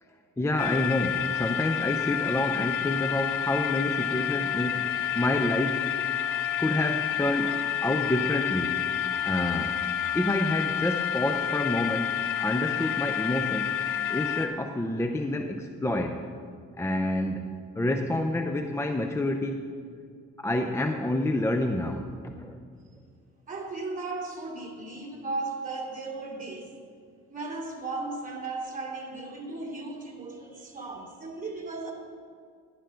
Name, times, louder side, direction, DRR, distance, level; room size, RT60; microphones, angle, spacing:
voice 1, 0.4-5.9 6.6-8.8 9.2-9.8 10.1-13.7 14.1-16.3 16.8-19.7 20.4-22.6, left 1 dB, 10° left, 5 dB, 0.5 m, -28 dB
sound 1, 0.6-14.5, left 10 dB, 90° left, 0.8 m, -29 dB
voice 2, 23.5-26.7 27.3-31.9, right 3 dB, 25° right, -2 dB, 2.7 m, -36 dB
12.0 x 11.0 x 3.7 m, 2.1 s
cardioid pair, 90°, 30 cm